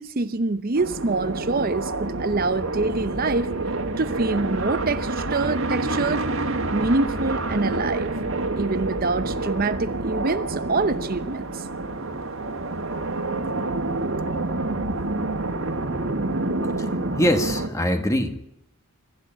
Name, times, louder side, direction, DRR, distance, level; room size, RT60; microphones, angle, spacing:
voice 1, 0.0-3.5 4.0-6.3 6.7-8.1 8.6-11.7, right 3 dB, 40° right, 11 dB, 0.7 m, -25 dB
sound 1, 0.8-17.7, right 2 dB, 60° right, 1.9 m, -28 dB
voice 2, 16.8-18.4, equal, 15° left, 6 dB, 1.8 m, -23 dB
25.0 x 13.5 x 9.1 m, 0.79 s
head